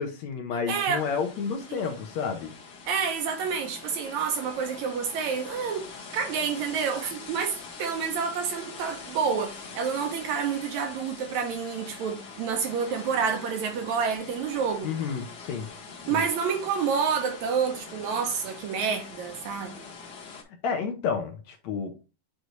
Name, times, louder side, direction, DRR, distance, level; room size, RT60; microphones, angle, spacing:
voice 1, 0.0-2.5 14.8-15.7 16.1-16.2 20.6-21.9, left 6 dB, 70° left, 1.9 m, -30 dB
voice 2, 0.7-1.1 1.7-2.0 2.9-5.9 6.1-14.9 16.1-19.8, right 6 dB, 75° right, 1.9 m, -29 dB
sound 1, 0.9-20.4, left 4 dB, 55° left, 1.2 m, -44 dB
7.9 x 4.0 x 3.1 m
omnidirectional pair, 3.7 m